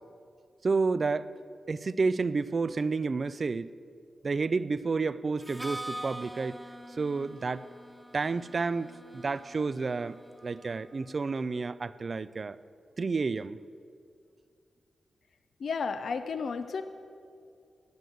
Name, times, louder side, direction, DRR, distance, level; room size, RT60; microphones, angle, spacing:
voice 1, 0.6-1.3 1.7-3.8 4.2-6.6 7.0-7.7 8.1-12.6 13.0-13.6, right 4 dB, 55° right, 16 dB, 0.4 m, -30 dB
Harmonica, 5.4-11.1, equal, 5° right, 1.2 m, -44 dB
voice 2, 15.6-16.8, left 5 dB, 75° left, 9 dB, 0.5 m, -32 dB
15.0 x 6.4 x 9.3 m, 2.4 s
supercardioid pair, 45°, 0 cm